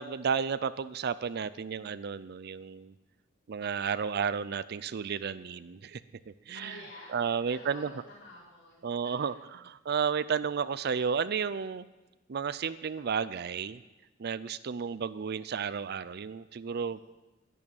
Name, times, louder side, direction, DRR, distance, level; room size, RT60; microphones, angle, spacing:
voice 1, 0.0-2.9 3.5-6.0 6.3-6.8 7.1-7.9 8.8-9.3 9.9-11.8 12.3-13.8 14.2-17.0, right 6 dB, 55° right, 15 dB, 0.4 m, -32 dB
voice 2, 6.5-9.1 9.4-9.5 16.8-17.0, left 2 dB, 60° left, -8 dB, 4.8 m, -50 dB
11.5 x 11.0 x 8.8 m, 1.1 s
head